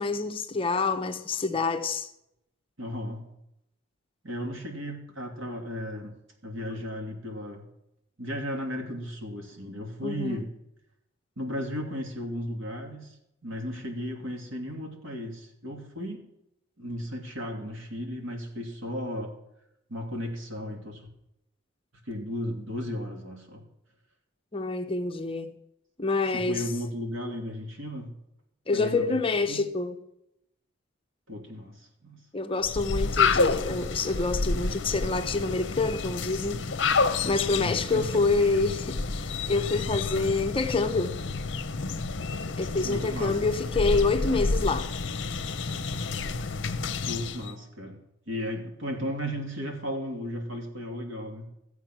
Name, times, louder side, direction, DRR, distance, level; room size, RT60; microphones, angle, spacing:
voice 1, 0.0-2.1 10.0-10.5 24.5-25.5 26.0-26.6 28.7-30.0 32.3-36.6 37.2-41.2 42.6-44.9, left 3 dB, 25° left, 0.8 m, -27 dB
voice 2, 2.8-3.3 4.2-6.1 6.4-7.7 8.2-10.5 11.4-13.1 13.4-16.3 16.8-19.4 19.9-21.1 22.1-23.6 26.3-28.1 28.7-29.2 29.5-29.6 31.3-32.2 37.6-38.2 42.8-43.5 47.0-51.5, equal, 80° right, 2.8 m, -35 dB
sound 1, 32.6-47.5, left 4 dB, 60° left, 0.8 m, -29 dB
15.0 x 8.0 x 6.1 m
head